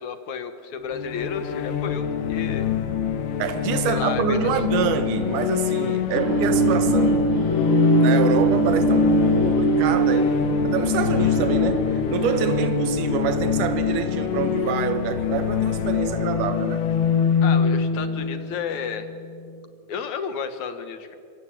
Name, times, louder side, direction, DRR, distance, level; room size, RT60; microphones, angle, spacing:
voice 1, 0.0-2.7 3.9-4.6 17.4-19.1 19.9-21.1, left 6 dB, 60° left, 2.6 m, -32 dB
sound 1, 0.9-19.5, left 8 dB, 85° left, 3.4 m, -24 dB
voice 2, 3.4-7.3 7.6-16.8, right 8 dB, 65° right, 2.8 m, -27 dB
sound 2, 6.1-14.4, right 3 dB, 35° left, 5.2 m, -23 dB
25.0 x 24.5 x 8.9 m
omnidirectional pair, 4.3 m